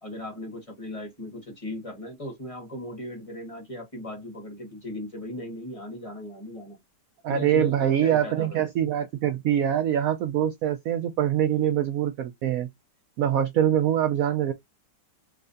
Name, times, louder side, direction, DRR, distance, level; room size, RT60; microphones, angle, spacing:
voice 1, 0.0-6.8 7.3-8.6, left 1 dB, 20° left, 1.5 m, -37 dB
voice 2, 7.2-12.7 13.2-14.5, right 10 dB, 70° right, 0.8 m, -24 dB
3.6 x 3.2 x 2.6 m
omnidirectional pair, 1.9 m